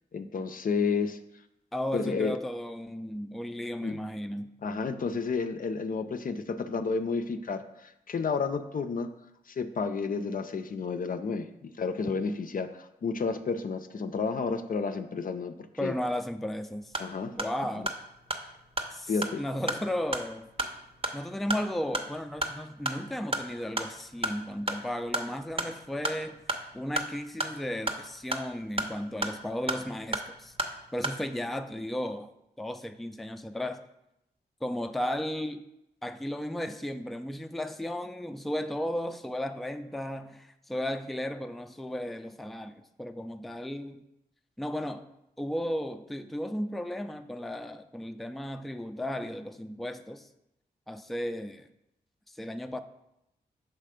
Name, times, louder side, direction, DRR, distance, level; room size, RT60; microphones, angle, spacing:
voice 1, 0.1-1.2 1.9-2.4 3.8-4.0 4.6-9.1 9.5-15.9 17.0-17.4 17.8-17.9 19.1-19.4, left 4 dB, 55° left, 9 dB, 0.5 m, -31 dB
voice 2, 1.7-4.5 15.8-16.9 17.4-17.9 18.9-20.5 21.1-26.4 26.7-30.6 30.9-32.3 32.6-33.8 34.6-35.6 36.0-42.7 43.0-44.0 44.6-45.1 45.4-50.3 50.9-51.7 52.3-52.8, left 1 dB, ahead, 8 dB, 0.4 m, -34 dB
sound 1, 16.7-31.2, right 1 dB, 30° right, 0.8 m, -35 dB
5.9 x 3.3 x 5.0 m, 0.85 s
supercardioid pair, 40°, 18 cm